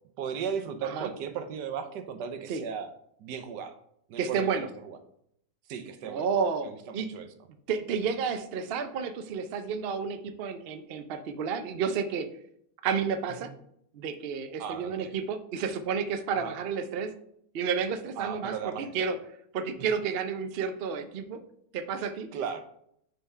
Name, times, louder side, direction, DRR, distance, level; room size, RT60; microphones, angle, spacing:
voice 1, 0.2-2.9 3.2-3.8 4.1-5.0 5.7-6.2 6.7-7.3 13.4-13.5 14.6-15.1 16.3-16.5 18.2-18.9 22.3-22.6, right 7 dB, 80° right, 9 dB, 1.4 m, -36 dB
voice 2, 4.2-4.7 6.0-7.1 7.7-12.3 12.8-13.5 13.9-17.1 17.5-19.2 19.5-21.4 21.7-22.3, right 6 dB, 65° right, 8 dB, 0.5 m, -31 dB
5.6 x 4.4 x 5.4 m, 0.70 s
omnidirectional pair, 1.8 m